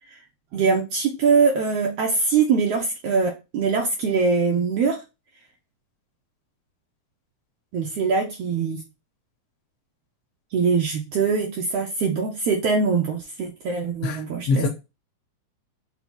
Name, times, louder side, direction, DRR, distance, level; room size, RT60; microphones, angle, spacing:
voice 1, 0.5-5.0 7.7-8.8 10.5-14.7, right 5 dB, 85° right, 1.3 m, -22 dB
voice 2, 14.0-14.7, left 3 dB, 70° left, 1.7 m, -24 dB
5.5 x 2.1 x 4.4 m
omnidirectional pair, 3.5 m